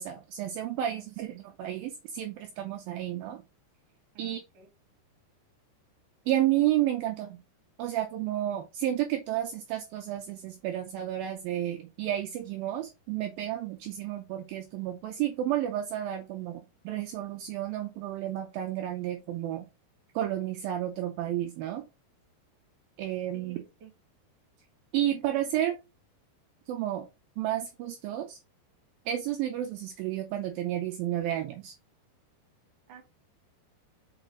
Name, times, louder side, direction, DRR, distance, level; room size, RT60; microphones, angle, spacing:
voice 1, 0.0-3.4 4.2-4.4 6.3-7.4 7.8-19.7 20.2-21.9 23.0-23.6 24.9-25.8 26.7-27.1 27.4-28.4 29.1-31.8, right 12 dB, 80° right, 4 dB, 2.2 m, -31 dB
voice 2, 4.1-4.7 23.3-23.9 32.9-33.0, right 6 dB, 45° right, 4 dB, 2.1 m, -52 dB
6.4 x 4.9 x 3.9 m, 0.26 s
omnidirectional pair, 4.9 m